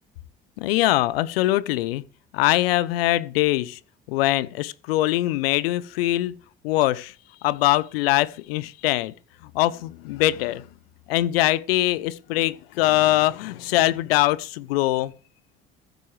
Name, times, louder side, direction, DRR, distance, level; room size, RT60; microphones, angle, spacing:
voice 1, 0.6-2.0 2.3-3.8 4.1-6.4 6.6-7.1 7.4-9.1 9.5-10.7 11.1-15.1, left 16 dB, 80° left, 0.8 m, -22 dB
14.5 x 13.0 x 3.2 m
hypercardioid pair, 55°, 30 cm